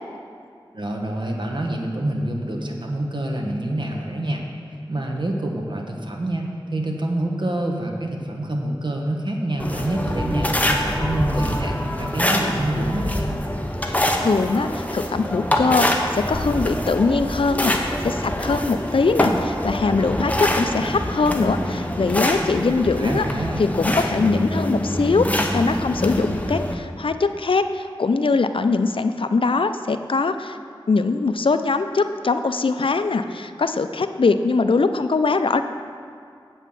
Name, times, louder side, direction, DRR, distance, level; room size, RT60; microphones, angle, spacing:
voice 1, 0.7-4.5 4.9-13.4 22.8-23.6, right 1 dB, 60° right, 1 dB, 1.1 m, -26 dB
sound 1, 9.6-26.7, left 1 dB, 15° left, 0.9 m, -25 dB
voice 2, 13.8-23.3 23.6-30.6 30.9-35.6, left 4 dB, 70° left, 9 dB, 0.4 m, -22 dB
8.3 x 5.6 x 7.5 m, 2.3 s
wide cardioid pair, 45°, 9 cm